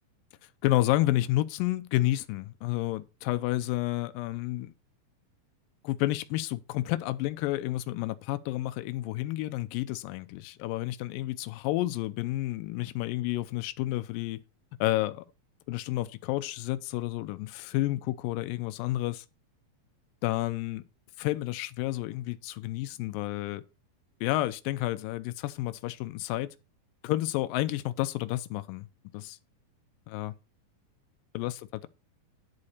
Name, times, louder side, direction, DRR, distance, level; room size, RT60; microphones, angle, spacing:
voice 1, 0.6-4.7 5.8-14.4 14.8-15.2 15.7-19.3 20.2-20.8 21.2-23.6 24.2-26.5 27.0-28.9 29.1-29.4 30.1-30.3 31.3-31.9, left 16 dB, 80° left, 2.1 m, -30 dB
11.0 x 4.1 x 6.5 m
omnidirectional pair, 4.5 m